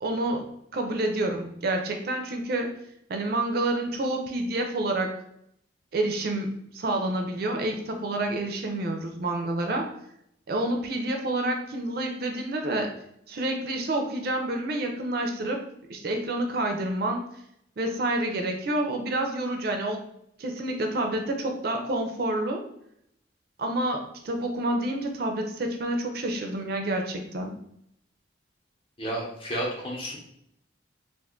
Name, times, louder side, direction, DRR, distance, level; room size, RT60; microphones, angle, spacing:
voice 1, 0.0-2.7 3.1-5.1 5.9-9.9 10.5-12.9 13.3-15.6 15.9-17.3 17.8-20.0 20.4-22.6 23.6-27.6, right 1 dB, 50° right, 3 dB, 0.4 m, -28 dB
voice 2, 29.0-30.2, right 1 dB, 30° left, -3 dB, 0.8 m, -31 dB
2.4 x 2.3 x 3.6 m, 0.73 s
head